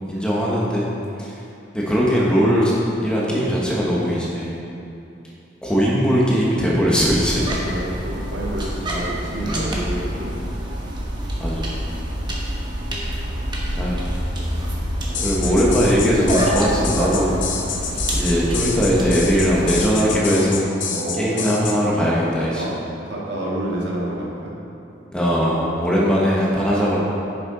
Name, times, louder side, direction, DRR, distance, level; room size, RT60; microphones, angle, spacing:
voice 1, 0.1-0.9 1.2-1.3 1.7-2.7 3.0-4.6 5.6-7.4 9.5-9.7 11.4-11.7 13.7-14.0 15.2-17.3 18.1-20.7 21.1-22.6 25.1-27.0, equal, 5° left, -6 dB, 1.2 m, -20 dB
sound 1, 7.0-19.8, equal, 25° right, 1.1 m, -26 dB
voice 2, 7.5-10.8 15.1-15.6 20.9-21.5 22.5-22.7 23.1-24.5 25.9-26.1, right 1 dB, 70° right, -5 dB, 1.9 m, -29 dB
sound 2, 15.1-21.8, left 6 dB, 80° left, 0.9 m, -28 dB
10.5 x 6.8 x 3.9 m, 2.8 s
head